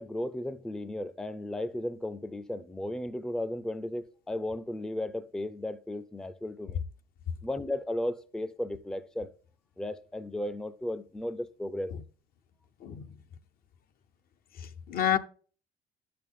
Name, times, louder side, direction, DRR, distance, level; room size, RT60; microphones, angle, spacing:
voice 1, 0.0-6.8 7.4-9.3 9.8-11.9, left 1 dB, 5° left, 0.4 m, -35 dB
voice 2, 14.6-15.2, left 10 dB, 60° left, 0.7 m, -29 dB
10.5 x 6.8 x 3.6 m
cardioid pair, 110°, 17 cm